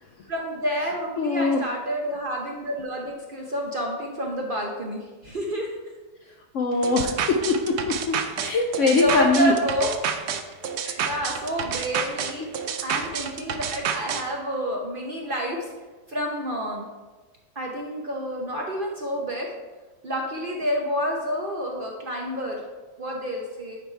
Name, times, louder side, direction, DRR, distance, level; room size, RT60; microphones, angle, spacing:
voice 1, 0.3-5.7 8.7-9.9 11.0-15.7 16.1-16.8 17.6-19.5 20.0-22.6 23.0-23.8, equal, 45° right, -1 dB, 0.7 m, -29 dB
voice 2, 1.2-1.7 6.5-9.5 10.8-11.0 12.4-12.5, left 3 dB, 70° left, 3 dB, 0.7 m, -23 dB
sound 1, 6.8-14.2, right 7 dB, 80° right, 0.6 m, -29 dB
9.1 x 3.4 x 4.4 m, 1.2 s
omnidirectional pair, 1.7 m